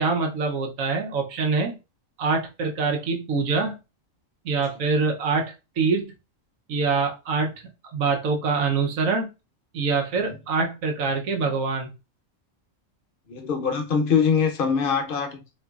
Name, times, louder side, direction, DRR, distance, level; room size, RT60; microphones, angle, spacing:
voice 1, 0.0-1.7 2.2-3.8 4.4-6.1 6.7-7.5 7.9-9.3 9.7-11.9, right 4 dB, 85° right, 1.1 m, -24 dB
voice 2, 13.3-15.4, left 6 dB, 50° left, 0.7 m, -23 dB
3.8 x 2.9 x 2.3 m
omnidirectional pair, 1.4 m